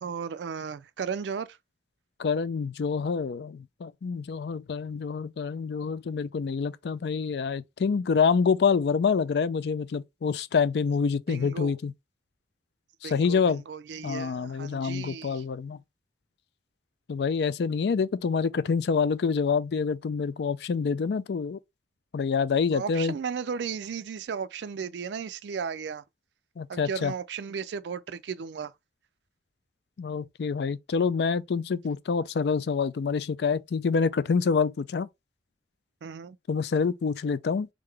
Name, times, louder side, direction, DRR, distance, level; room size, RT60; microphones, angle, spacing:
voice 1, 0.0-1.6 11.3-11.8 13.0-15.4 22.7-26.0 26.7-28.7 36.0-36.4, right 6 dB, 80° right, 0.4 m, -35 dB
voice 2, 2.2-11.9 13.0-13.6 14.0-15.8 17.1-21.6 22.1-23.1 26.6-27.1 30.0-35.1 36.5-37.7, left 5 dB, 70° left, 0.4 m, -27 dB
3.7 x 3.7 x 3.3 m
head